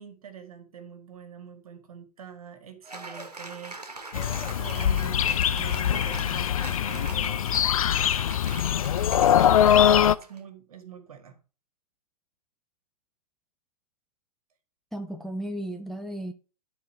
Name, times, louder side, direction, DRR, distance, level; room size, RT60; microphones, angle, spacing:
voice 1, 0.0-3.8 4.6-7.5 9.9-11.4, right 8 dB, 65° right, 1.8 m, -44 dB
Cheering / Applause, 2.8-10.4, right 3 dB, 85° right, 1.4 m, -42 dB
sound 1, 4.1-10.1, left 10 dB, 60° left, 0.5 m, -22 dB
voice 2, 14.9-16.3, right 1 dB, ahead, 0.5 m, -34 dB
11.0 x 4.2 x 4.4 m
figure-of-eight pair, 115°, 20 cm